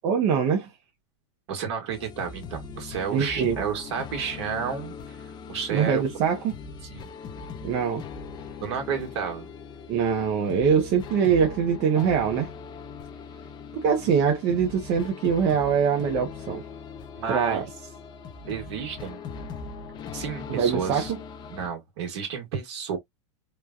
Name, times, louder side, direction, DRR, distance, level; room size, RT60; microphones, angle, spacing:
voice 1, 0.0-0.7 3.1-3.6 5.7-6.5 7.6-8.0 9.9-12.5 13.8-16.6 17.3-17.6 20.5-21.0, right 7 dB, 45° right, 0.8 m, -23 dB
voice 2, 1.5-5.2 5.5-6.0 6.9-7.1 8.6-9.5 14.0-14.1 17.1-17.7 18.4-19.2 20.1-21.1 21.5-23.0, right 7 dB, 65° right, 1.5 m, -31 dB
sound 1, 1.9-21.7, left 5 dB, 30° left, 0.6 m, -40 dB
3.1 x 2.2 x 2.3 m
hypercardioid pair, 120°, 16 cm